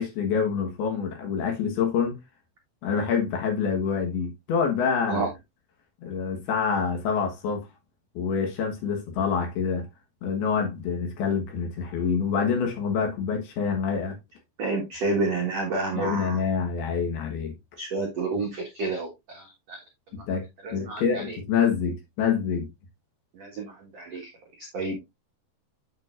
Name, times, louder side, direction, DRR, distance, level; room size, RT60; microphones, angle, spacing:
voice 1, 0.0-2.2 2.8-5.3 6.0-7.7 8.1-9.9 10.2-14.2 15.9-17.5 20.1-20.5 20.7-22.7, left 6 dB, 65° left, 3.0 m, -26 dB
voice 2, 14.6-16.4 17.8-19.8 20.2-20.3 20.6-21.4 23.4-24.3 24.6-25.0, right 3 dB, 80° right, 1.4 m, -30 dB
8.8 x 7.1 x 2.5 m
omnidirectional pair, 5.5 m